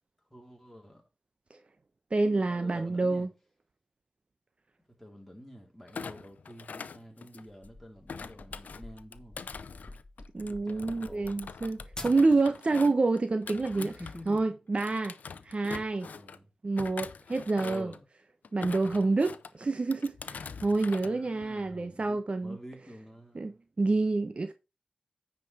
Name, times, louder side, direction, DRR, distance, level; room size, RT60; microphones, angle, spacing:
voice 1, 0.3-1.0 2.3-3.3 4.9-9.4 10.4-11.6 13.7-14.4 15.7-16.5 17.6-18.0 21.0-23.5, equal, 5° left, 4.0 m, -48 dB
voice 2, 2.1-3.3 10.3-13.9 14.3-15.1 15.4-16.1 16.6-17.9 18.5-22.6 23.3-24.5, right 3 dB, 45° right, 0.9 m, -28 dB
Thump thud, 5.9-7.6 8.1-14.4 14.8-16.4 16.8-18.0 18.4-19.5 19.9-21.1 21.4-21.7, left 5 dB, 85° left, 0.6 m, -44 dB
sound 1, 7.6-12.6, left 2 dB, 25° left, 1.4 m, -48 dB
9.3 x 5.0 x 4.8 m
cardioid pair, 55°, 3 cm